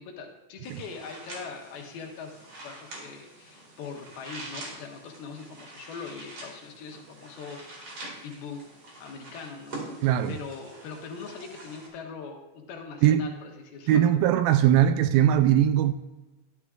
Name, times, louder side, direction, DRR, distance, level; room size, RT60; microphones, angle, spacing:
voice 1, 0.0-7.9 8.2-8.6 9.0-9.8 10.3-14.0, left 5 dB, 80° left, 3.1 m, -41 dB
sound 1, 0.6-11.9, right 2 dB, 45° right, 2.5 m, -45 dB
voice 2, 10.0-10.4 13.0-13.2 13.9-15.9, right 11 dB, 80° right, 2.2 m, -20 dB
11.5 x 11.5 x 2.4 m
omnidirectional pair, 4.4 m